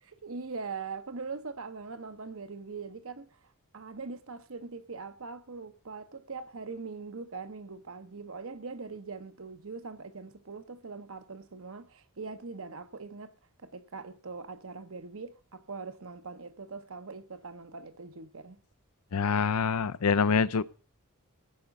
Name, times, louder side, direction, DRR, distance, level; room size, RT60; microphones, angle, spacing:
voice 1, 0.0-3.4 3.7-13.3 13.6-18.6, right 4 dB, 65° right, 1.0 m, -42 dB
voice 2, 19.1-20.6, left 5 dB, 85° left, 0.6 m, -25 dB
15.5 x 10.0 x 5.3 m
head